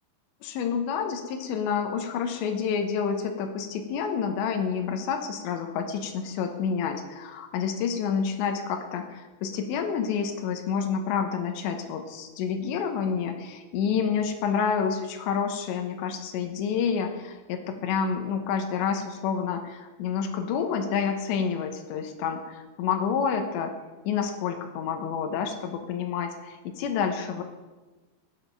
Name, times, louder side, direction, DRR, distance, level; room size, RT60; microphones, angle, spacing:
voice 1, 0.4-23.7 24.0-27.4, left 6 dB, 85° left, 4 dB, 3.3 m, -29 dB
17.5 x 7.4 x 5.5 m, 1.2 s
omnidirectional pair, 5.2 m